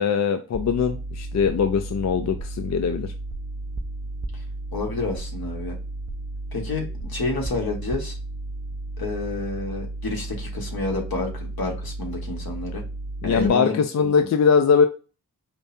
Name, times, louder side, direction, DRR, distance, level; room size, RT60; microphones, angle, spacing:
voice 1, 0.0-3.1 13.2-14.9, left 6 dB, 45° left, 7 dB, 0.4 m, -21 dB
sound 1, 0.5-13.5, right 2 dB, 10° right, 0.5 m, -33 dB
voice 2, 4.7-5.7 6.5-8.1 9.0-12.8 13.2-13.8, left 3 dB, 70° left, 1 dB, 1.5 m, -29 dB
5.0 x 2.1 x 2.6 m, 0.34 s
wide cardioid pair, 70°, 38 cm